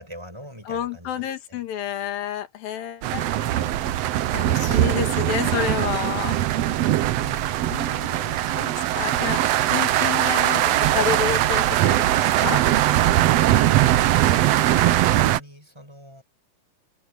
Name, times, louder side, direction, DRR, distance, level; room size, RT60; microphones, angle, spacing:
voice 1, 0.0-1.6 7.2-7.6 13.5-16.2, equal, 5° right, 7.3 m, -43 dB
voice 2, 0.7-3.7 4.3-6.4 7.7-12.1 12.4-12.6, left 9 dB, 90° left, 3.6 m, -30 dB
sound 1, 3.0-15.4, right 13 dB, 85° right, 1.4 m, -21 dB
omnidirectional pair, 4.0 m